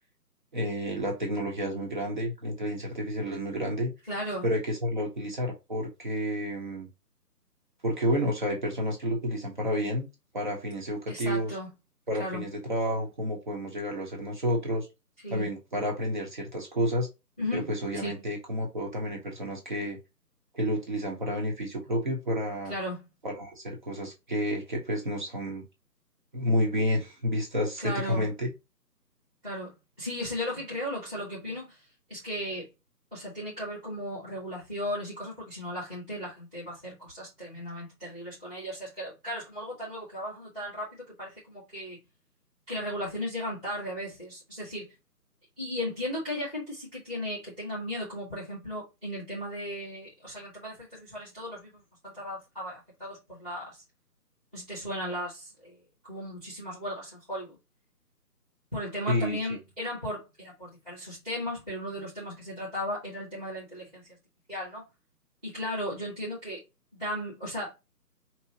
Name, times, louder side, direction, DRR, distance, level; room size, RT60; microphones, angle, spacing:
voice 1, 0.5-3.9 4.4-6.9 7.8-10.1 10.3-11.5 12.1-14.9 15.3-17.1 17.5-20.0 20.5-22.7 23.2-25.6 26.3-28.5 59.1-59.4, equal, 30° right, 1.3 m, -30 dB
voice 2, 4.0-4.4 11.1-11.7 12.1-12.4 15.2-15.5 17.4-17.7 17.9-18.3 22.7-23.1 27.8-28.3 29.4-32.7 33.1-42.0 42.7-44.9 45.6-53.8 54.5-55.8 56.1-57.6 58.7-64.1 64.5-64.8 65.4-66.6 66.9-67.7, equal, 5° right, 1.0 m, -36 dB
5.2 x 3.0 x 2.9 m
figure-of-eight pair, 150°, 49 cm